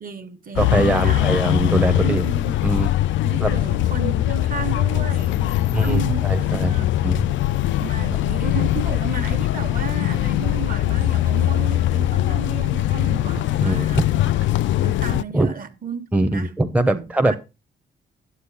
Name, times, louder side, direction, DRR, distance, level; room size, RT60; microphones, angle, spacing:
voice 1, 0.0-1.5 2.0-2.5 3.2-6.9 7.8-16.5 16.9-17.4, right 7 dB, 45° right, 1.3 m, -33 dB
sound 1, 0.6-15.2, left 14 dB, 75° left, 0.4 m, -21 dB
voice 2, 0.6-2.2 2.6-2.9 3.4-3.5 5.7-6.7 7.0-7.2 13.6-13.9 15.3-15.5 16.1-17.4, right 1 dB, 5° right, 0.8 m, -21 dB
9.7 x 7.6 x 4.1 m
cardioid pair, 90°, 20 cm